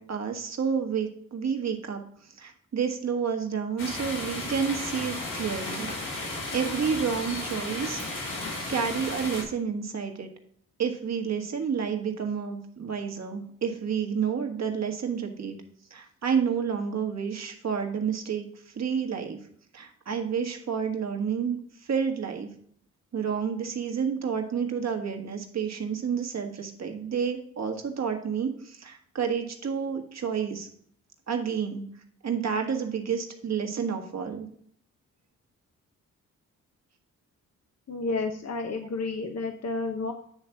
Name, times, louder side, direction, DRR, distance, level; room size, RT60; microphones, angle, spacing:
voice 1, 0.0-2.0 2.4-5.9 6.1-8.0 8.7-10.3 10.8-15.6 15.9-18.4 18.8-19.4 19.7-21.6 21.9-22.5 23.1-30.7 31.3-31.8 32.2-34.5, right 6 dB, 50° right, 4 dB, 1.6 m, -30 dB
sound 1, 3.8-9.4, left 2 dB, 75° left, 3.1 m, -34 dB
voice 2, 37.9-40.1, left 3 dB, 50° left, 5 dB, 0.9 m, -31 dB
9.6 x 3.3 x 5.8 m, 0.63 s
supercardioid pair, 55°, 33 cm